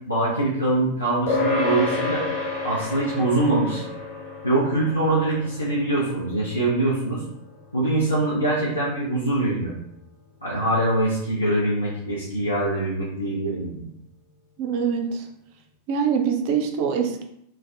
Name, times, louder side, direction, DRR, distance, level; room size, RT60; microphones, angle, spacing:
voice 1, 0.1-2.2 2.6-3.8 4.4-7.2 7.7-9.7 10.4-13.9, right 2 dB, 85° left, -7 dB, 0.6 m, -23 dB
sound 1, 1.3-10.9, left 3 dB, 50° left, 0.9 m, -31 dB
voice 2, 14.6-15.2 15.9-17.2, right 7 dB, 45° right, 4 dB, 0.4 m, -24 dB
3.2 x 2.1 x 2.4 m, 0.74 s
figure-of-eight pair, 90°, 0 cm